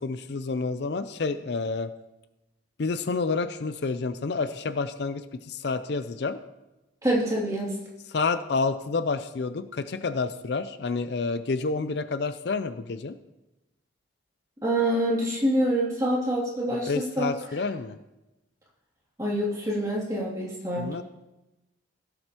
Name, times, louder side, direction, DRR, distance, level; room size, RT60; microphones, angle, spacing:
voice 1, 0.0-1.9 2.8-6.4 8.1-13.1 16.9-18.0 20.8-21.0, left 4 dB, 60° left, 11 dB, 0.5 m, -29 dB
voice 2, 7.0-7.7 14.6-17.3 19.2-20.9, right 1 dB, 20° right, -5 dB, 2.6 m, -26 dB
16.5 x 7.8 x 2.9 m, 1.0 s
head